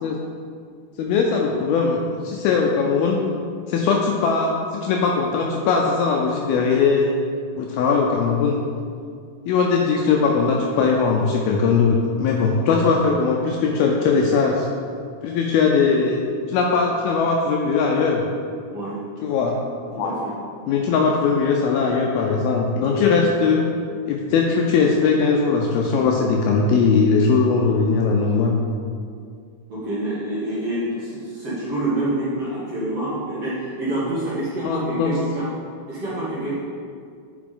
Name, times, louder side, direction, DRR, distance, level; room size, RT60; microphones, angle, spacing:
voice 1, 1.0-2.0 2.2-3.2 3.7-7.1 7.5-8.6 9.5-14.7 15.2-16.2 16.5-18.2 19.2-19.6 20.0-20.2 20.7-23.6 24.1-28.5 34.6-35.1, left 5 dB, 80° left, 0 dB, 2.2 m, -20 dB
voice 2, 19.9-20.3 29.7-35.5 35.9-36.6, right 1 dB, 50° right, -10 dB, 2.1 m, -27 dB
9.7 x 6.0 x 3.8 m, 2.2 s
omnidirectional pair, 4.8 m